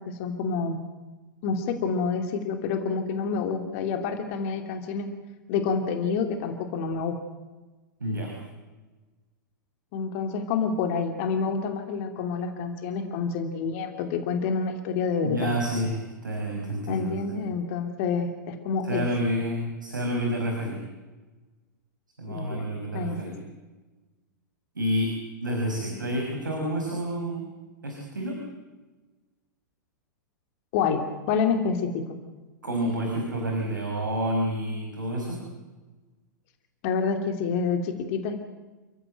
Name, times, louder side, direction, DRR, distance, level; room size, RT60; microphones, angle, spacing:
voice 1, 0.1-0.8 1.4-5.1 5.5-7.2 9.9-15.4 16.9-19.0 22.3-22.6 22.9-23.2 30.7-31.9 36.8-38.4, left 5 dB, 45° left, 6 dB, 2.8 m, -28 dB
voice 2, 8.0-8.3 15.2-17.4 18.8-20.8 22.2-23.3 24.8-25.1 25.4-27.5 27.8-28.4 32.6-35.4, equal, 75° right, 1 dB, 5.7 m, -29 dB
29.0 x 16.0 x 9.2 m, 1.2 s
figure-of-eight pair, 100°, 10 cm